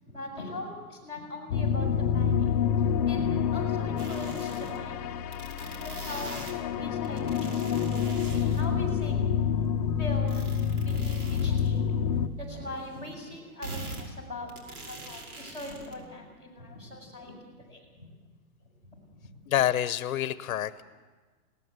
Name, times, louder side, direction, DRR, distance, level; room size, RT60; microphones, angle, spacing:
voice 1, 0.0-2.5 3.1-5.0 5.5-6.3 6.8-7.9 8.3-9.2 10.0-10.5 10.8-11.8 12.3-18.1 19.1-19.3, left 1 dB, 15° right, -2 dB, 6.2 m, -41 dB
sound 1, 1.5-12.3, left 7 dB, 25° left, 0.7 m, -28 dB
sound 2, 4.0-4.8 5.3-6.5 7.0-8.7 10.3-11.7 12.1-12.2 12.6-12.7 13.6-14.0 14.5-16.0, right 2 dB, 80° right, 5.7 m, -43 dB
voice 2, 19.5-20.8, left 12 dB, 70° left, 15 dB, 0.8 m, -27 dB
21.0 x 18.0 x 8.0 m, 1.4 s
supercardioid pair, 175°, 44 cm